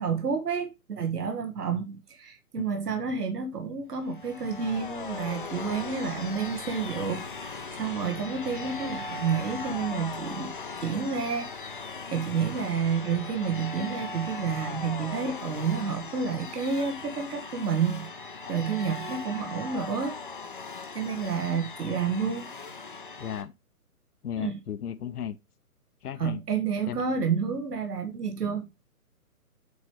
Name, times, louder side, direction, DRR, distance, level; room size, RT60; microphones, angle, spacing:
voice 1, 0.0-10.5 10.8-20.2 20.9-22.5 24.4-24.6 26.2-28.7, right 6 dB, 85° right, 1.6 m, -30 dB
sound 1, 4.0-23.4, left 4 dB, 35° left, 0.5 m, -39 dB
voice 2, 23.2-23.5 24.2-25.4 26.0-26.4 26.9-27.0, left 9 dB, 75° left, 0.9 m, -34 dB
8.0 x 3.3 x 4.6 m
hypercardioid pair, 165°, 46 cm